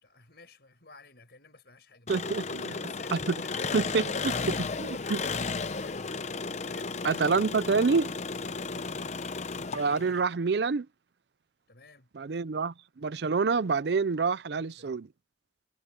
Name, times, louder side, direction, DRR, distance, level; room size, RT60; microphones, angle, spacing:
voice 1, 0.0-6.3 6.6-7.4 8.6-8.9 11.7-12.1 14.6-14.9, left 3 dB, 60° left, 5.7 m, -52 dB
Engine, 2.1-10.2, left 4 dB, 40° left, 0.7 m, -34 dB
voice 2, 2.1-2.7 3.1-3.4 3.7-4.3 4.8-5.2 7.0-8.1 9.7-10.9 12.1-15.1, right 4 dB, 65° right, 0.5 m, -27 dB
head